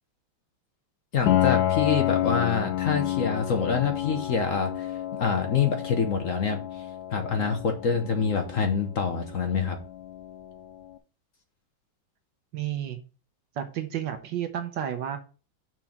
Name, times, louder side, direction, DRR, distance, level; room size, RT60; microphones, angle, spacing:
voice 1, 1.1-4.9 5.2-6.8 7.1-9.8, left 6 dB, 50° left, 5 dB, 1.0 m, -26 dB
Piano, 1.3-10.8, left 12 dB, 75° left, 1.4 m, -30 dB
voice 2, 12.5-13.0 13.6-15.2, right 10 dB, 70° right, 7 dB, 1.4 m, -31 dB
6.1 x 4.5 x 5.8 m, 0.35 s
omnidirectional pair, 2.2 m